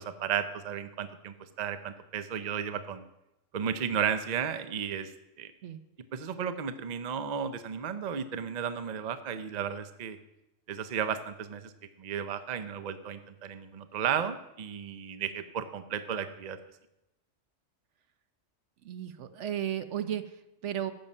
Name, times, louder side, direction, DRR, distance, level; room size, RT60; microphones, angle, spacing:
voice 1, 0.0-3.0 3.5-5.1 5.4-5.5 6.1-10.2 10.7-11.7 12.0-16.6, right 8 dB, 45° right, 10 dB, 0.7 m, -34 dB
voice 2, 18.8-20.9, right 10 dB, 70° right, 10 dB, 1.0 m, -34 dB
14.5 x 7.2 x 5.4 m, 0.91 s
omnidirectional pair, 1.3 m